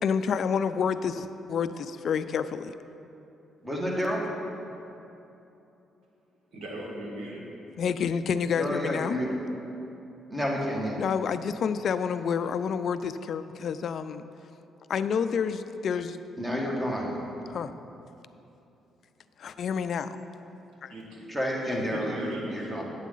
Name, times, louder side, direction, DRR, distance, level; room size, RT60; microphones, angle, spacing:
voice 1, 0.0-2.7 7.8-9.1 11.0-14.2 14.9-16.2 17.5-17.7 19.4-20.2 20.8-20.9, left 6 dB, 60° left, 12 dB, 0.3 m, -29 dB
voice 2, 3.6-4.2 8.5-9.3 10.3-11.0 16.4-17.1 21.3-22.8, equal, 10° right, -2 dB, 1.6 m, -30 dB
voice 3, 6.5-7.4 20.9-21.3 21.6-22.8, right 1 dB, 80° right, -3 dB, 1.9 m, -38 dB
9.0 x 8.2 x 3.9 m, 2.9 s
cardioid pair, 90°, 0 cm